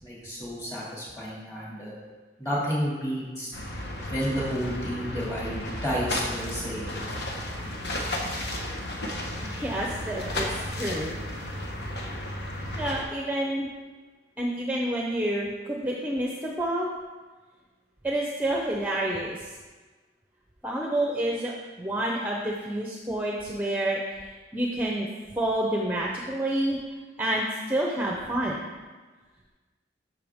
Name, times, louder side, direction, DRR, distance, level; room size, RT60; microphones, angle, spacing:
voice 1, 0.0-1.9 2.4-3.5 3.9-6.9, equal, 15° left, -6 dB, 2.5 m, -31 dB
sound 1, 3.5-13.0, left 1 dB, 70° left, 1.2 m, -33 dB
voice 2, 9.4-11.2 12.8-13.7 14.4-16.9 18.0-19.5 20.6-21.5 21.8-24.3 24.5-25.1 25.4-26.8 27.2-28.7, right 1 dB, 10° right, -2 dB, 0.7 m, -28 dB
13.0 x 5.8 x 3.6 m, 1.3 s
head